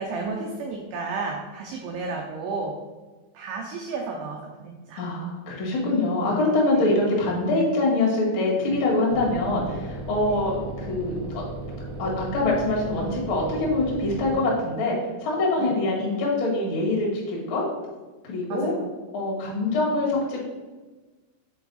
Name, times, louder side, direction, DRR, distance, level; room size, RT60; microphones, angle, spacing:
voice 1, 0.0-2.8 3.3-5.0 6.7-6.9 10.3-10.4 15.6-15.7 18.5-18.8, right 4 dB, 90° right, 1 dB, 2.3 m, -32 dB
voice 2, 5.0-10.6 10.9-11.4 12.0-17.6 18.2-18.7 19.1-20.4, left 2 dB, 65° left, -4 dB, 1.2 m, -24 dB
sound 1, 9.1-14.3, right 2 dB, 65° right, 2.7 m, -36 dB
6.7 x 4.6 x 4.0 m, 1.3 s
omnidirectional pair, 5.5 m